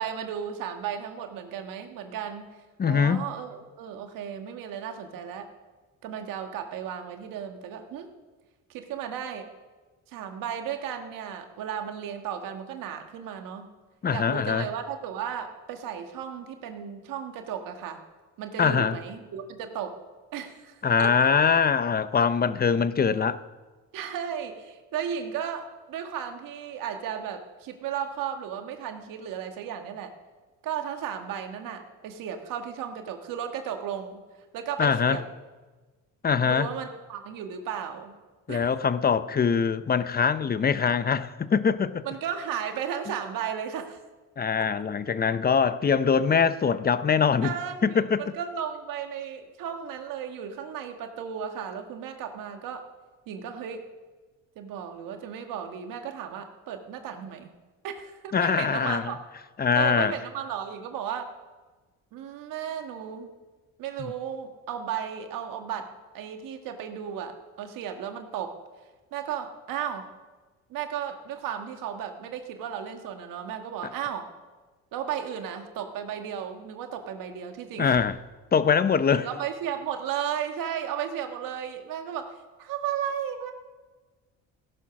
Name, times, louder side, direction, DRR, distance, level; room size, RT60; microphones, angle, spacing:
voice 1, 0.0-2.5 2.9-5.5 6.0-8.1 8.7-9.5 10.1-13.7 14.1-18.0 18.4-20.0 20.3-21.3 23.9-30.1 30.6-34.2 34.5-35.2 36.4-38.1 38.5-38.7 42.0-44.0 47.4-52.8 53.3-53.8 54.6-57.5 57.8-59.3 59.8-61.3 62.1-63.3 63.8-65.9 66.1-68.6 69.1-70.1 70.7-74.3 74.9-78.0 79.1-83.5, right 8 dB, 75° right, 1.7 m, -34 dB
voice 2, 2.8-3.3 14.0-14.7 18.6-19.0 20.8-23.4 34.8-35.2 36.2-36.7 38.5-42.1 44.4-47.5 47.8-48.2 58.3-59.1 59.6-60.1 64.0-64.1 77.8-78.1 78.5-79.3, left 6 dB, 30° left, 0.7 m, -23 dB
17.0 x 11.0 x 6.0 m
cardioid pair, 90°, 33 cm